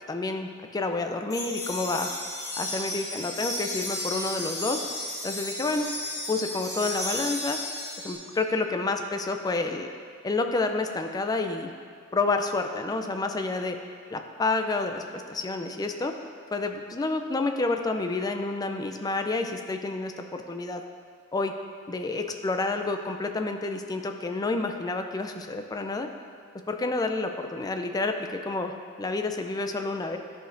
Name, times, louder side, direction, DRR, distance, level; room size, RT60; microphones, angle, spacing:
voice 1, 0.1-2.1 2.6-4.8 5.2-5.9 6.3-7.6 8.0-9.9 10.2-11.7 12.1-13.8 14.1-16.1 16.5-20.8 21.3-21.5 21.9-26.1 26.7-28.7 29.0-30.2, left 3 dB, 20° left, 5 dB, 0.3 m, -29 dB
sound 1, 1.3-8.2, left 1 dB, 35° left, 1.4 m, -33 dB
12.0 x 5.0 x 2.5 m, 2.1 s
head